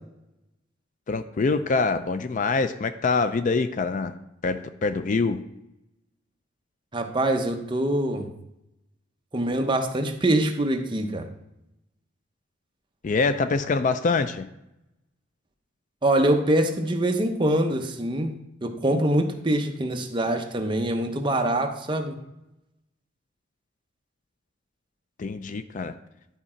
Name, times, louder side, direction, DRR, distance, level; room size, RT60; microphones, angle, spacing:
voice 1, 1.1-4.1 4.4-5.4 13.0-14.5 25.2-25.9, left 4 dB, 40° left, 11 dB, 0.4 m, -25 dB
voice 2, 6.9-8.3 9.3-11.3 16.0-18.3 18.6-22.2, right 1 dB, 25° right, 4 dB, 0.8 m, -24 dB
11.0 x 4.8 x 4.3 m, 0.87 s
head